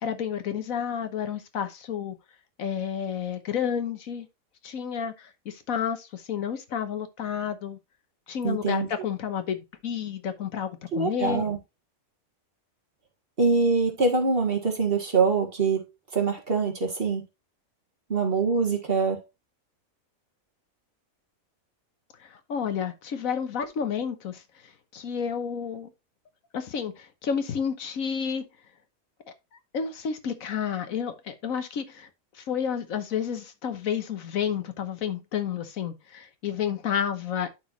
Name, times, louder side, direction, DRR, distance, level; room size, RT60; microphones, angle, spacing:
voice 1, 0.0-2.2 2.6-4.3 4.6-7.8 8.3-11.5 22.2-24.4 24.9-25.9 26.5-28.4 29.7-32.1 32.3-37.5, left 7 dB, 75° left, 1.4 m, -30 dB
voice 2, 8.4-8.9 10.9-11.6 13.4-15.8 16.1-17.2 18.1-19.2, right 4 dB, 45° right, 1.8 m, -24 dB
11.5 x 4.4 x 2.9 m
omnidirectional pair, 1.5 m